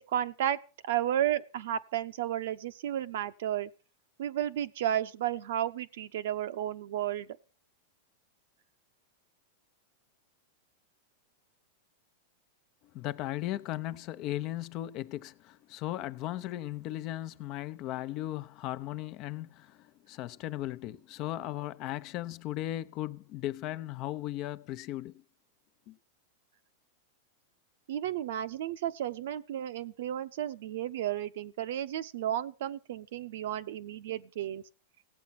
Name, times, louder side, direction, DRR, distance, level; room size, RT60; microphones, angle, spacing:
voice 1, 0.1-3.7 4.2-7.3 27.9-34.6, right 11 dB, 70° right, 0.9 m, -33 dB
voice 2, 12.9-25.1 25.9-26.0, left 14 dB, 45° left, 0.7 m, -37 dB
16.5 x 8.4 x 5.9 m
hypercardioid pair, 130°, 0 cm